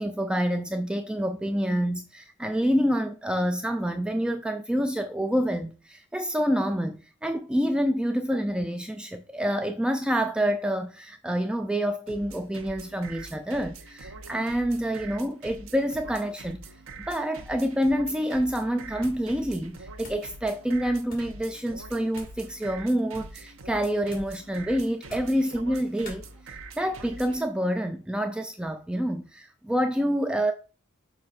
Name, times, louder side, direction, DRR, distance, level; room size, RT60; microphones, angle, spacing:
voice 1, 0.0-16.7 17.0-26.2 26.8-30.5, equal, 5° right, 0.4 m, -27 dB
sound 1, 12.1-27.4, right 3 dB, 80° right, 0.9 m, -44 dB
sound 2, 19.0-19.3 19.6-20.3 21.0-21.4 22.1-22.5 23.0-23.4 24.1-24.4 25.0-25.4 26.0-26.2, left 2 dB, 45° left, 2.5 m, -47 dB
6.5 x 5.0 x 4.3 m
head